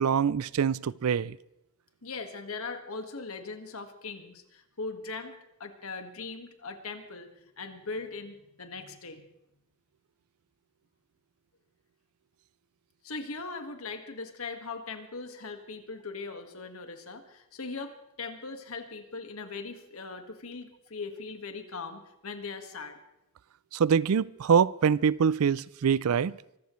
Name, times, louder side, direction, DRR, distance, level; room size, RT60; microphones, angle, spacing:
voice 1, 0.0-1.4 23.7-26.4, right 7 dB, 85° right, 0.4 m, -24 dB
voice 2, 2.0-7.3 7.6-9.2 13.0-23.0, left 4 dB, 80° left, 1.7 m, -40 dB
24.5 x 15.0 x 3.2 m
head